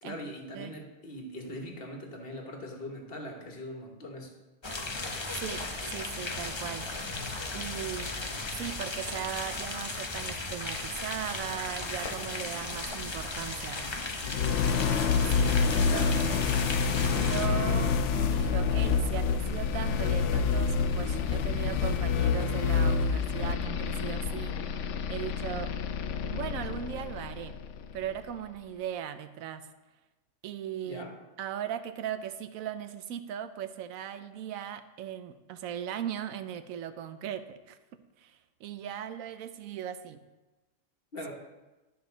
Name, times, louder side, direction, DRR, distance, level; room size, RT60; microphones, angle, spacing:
voice 1, 0.0-4.3 15.8-16.2 30.8-31.1 41.1-41.3, left 1 dB, 45° left, 2 dB, 1.5 m, -41 dB
sound 1, 4.6-17.5, left 2 dB, 30° left, 0.6 m, -36 dB
voice 2, 5.3-6.9 7.5-8.1 8.5-13.8 15.3-16.4 17.1-24.8 25.1-25.7 26.2-27.6 27.9-29.7 30.4-31.0 31.4-40.2, right 10 dB, 85° right, 11 dB, 1.0 m, -38 dB
sound 2, 14.2-28.1, left 5 dB, 70° left, 0.8 m, -28 dB
12.0 x 5.5 x 3.9 m, 1.1 s
omnidirectional pair, 1.4 m